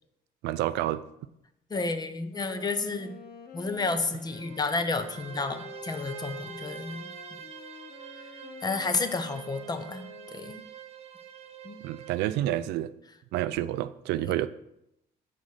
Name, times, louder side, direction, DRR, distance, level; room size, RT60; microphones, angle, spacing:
voice 1, 0.4-1.0 11.8-12.9 13.3-14.5, right 14 dB, 85° right, 0.4 m, -29 dB
voice 2, 1.7-3.2 3.5-7.1 8.6-10.7 11.6-11.8 14.2-14.3, left 3 dB, 25° left, 0.7 m, -31 dB
Wind instrument woodwind instrument, 2.3-10.6, left 6 dB, 70° left, 0.8 m, -47 dB
Bowed string instrument, 4.1-12.4, right 9 dB, 35° right, 0.8 m, -45 dB
6.3 x 4.2 x 6.4 m
cardioid pair, 110°, 17 cm